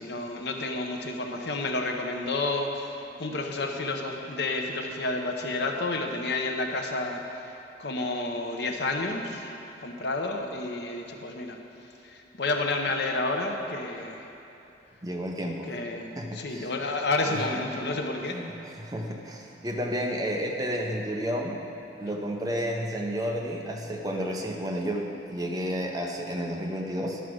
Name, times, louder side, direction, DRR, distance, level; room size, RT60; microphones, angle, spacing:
voice 1, 0.0-7.5 7.8-9.5 9.8-11.6 12.0-14.3 15.6-18.4, left 2 dB, 60° left, 3 dB, 0.8 m, -30 dB
voice 2, 15.0-15.7 16.2-16.7 17.3-17.4 18.3-21.6 22.0-27.2, equal, 20° right, 0 dB, 0.7 m, -31 dB
11.0 x 4.8 x 6.3 m, 2.8 s
head